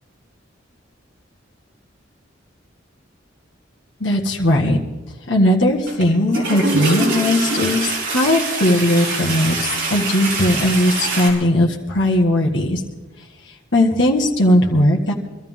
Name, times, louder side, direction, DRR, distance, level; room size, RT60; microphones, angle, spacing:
voice 1, 4.0-4.8 5.3-12.8 13.7-15.1, left 1 dB, 65° left, -2 dB, 1.6 m, -18 dB
Toilet flush, 5.9-6.0 6.3-11.3, right 3 dB, 75° right, 4.3 m, -24 dB
23.5 x 13.5 x 3.7 m, 1.2 s
head